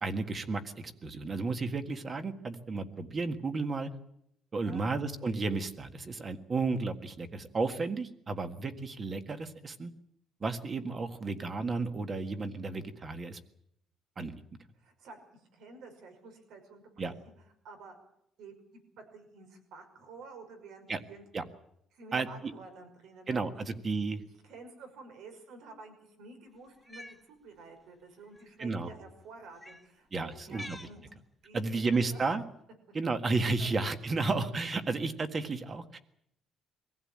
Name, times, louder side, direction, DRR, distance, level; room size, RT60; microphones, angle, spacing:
voice 1, 0.0-3.9 4.5-9.9 10.4-13.4 14.2-14.3 17.0-17.1 20.9-21.0 21.3-21.4 22.1-22.5 23.3-24.2 28.6-28.9 30.1-30.8 31.5-32.4 32.9-36.0, right 3 dB, 30° right, 8 dB, 1.7 m, -33 dB
voice 2, 14.8-17.1 17.6-18.0 18.4-18.6 19.0-21.2 21.9-23.4 24.4-31.0 31.4-32.2 33.6-33.7, right 3 dB, 80° right, 6 dB, 5.7 m, -51 dB
Cat, 26.7-27.2 28.3-28.4 29.6-29.9 30.4-31.0 31.9-32.3, left 1 dB, 5° left, 1.6 m, -47 dB
23.5 x 15.5 x 8.8 m, 0.77 s
cardioid pair, 140°, 0 cm